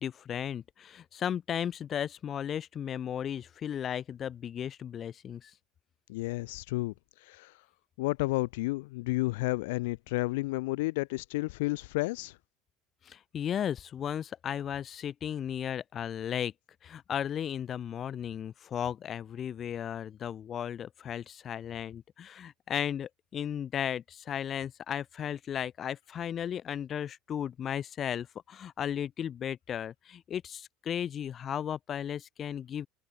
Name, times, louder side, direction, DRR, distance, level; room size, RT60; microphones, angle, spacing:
voice 1, 0.0-5.5 13.0-16.5 16.8-32.9, left 9 dB, 35° left, 3.0 m, -35 dB
voice 2, 6.1-6.9 7.2-7.5 8.0-12.4, left 22 dB, 90° left, 0.7 m, -31 dB
supercardioid pair, 130°, 0 cm